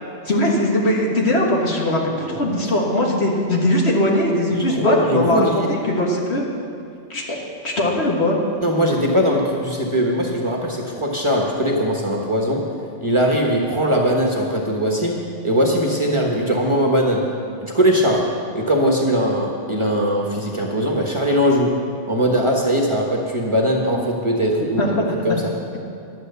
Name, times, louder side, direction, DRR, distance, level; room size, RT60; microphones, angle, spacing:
voice 1, 0.3-6.4 7.1-8.4 23.7-23.8 24.8-25.4, left 1 dB, 60° left, -2 dB, 1.9 m, -20 dB
voice 2, 4.7-5.7 8.6-12.6 13.0-15.2 15.4-17.2 17.6-18.2 18.5-21.7 22.1-25.0 25.2-25.4, equal, 25° right, -1 dB, 1.2 m, -20 dB
11.0 x 8.9 x 6.8 m, 2.5 s
omnidirectional pair, 1.3 m